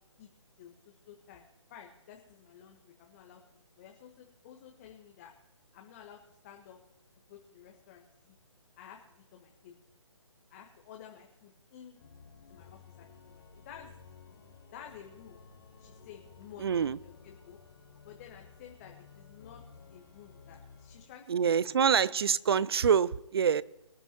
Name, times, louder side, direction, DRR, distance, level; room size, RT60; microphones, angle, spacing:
voice 1, 0.6-5.3 5.7-6.8 7.3-8.4 8.8-9.7 10.5-12.0 12.5-14.0 14.7-15.4 15.8-17.6 18.0-19.6 19.9-21.8, left 9 dB, 30° left, 1 dB, 1.4 m, -52 dB
Organ, 12.0-21.2, left 6 dB, 50° left, 1.8 m, -55 dB
voice 2, 16.6-17.0 21.3-23.6, right 7 dB, 50° right, 21 dB, 0.5 m, -26 dB
24.5 x 9.9 x 3.0 m, 0.95 s
figure-of-eight pair, 140°, 16 cm